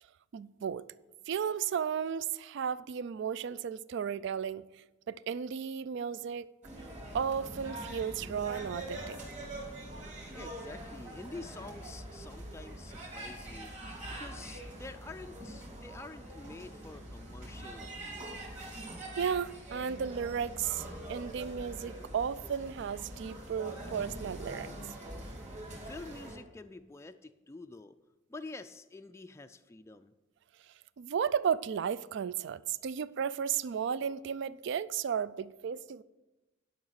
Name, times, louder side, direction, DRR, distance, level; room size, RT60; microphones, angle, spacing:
voice 1, 0.3-0.9 1.3-4.6 5.1-6.5 7.1-9.2 19.2-24.7 31.0-36.0, right 7 dB, 60° right, 0.3 m, -34 dB
sound 1, 6.6-26.4, right 1 dB, 35° right, 3.1 m, -44 dB
voice 2, 10.3-18.3 25.8-28.0 28.3-30.1, left 3 dB, 15° left, 0.3 m, -48 dB
11.0 x 5.7 x 6.4 m
head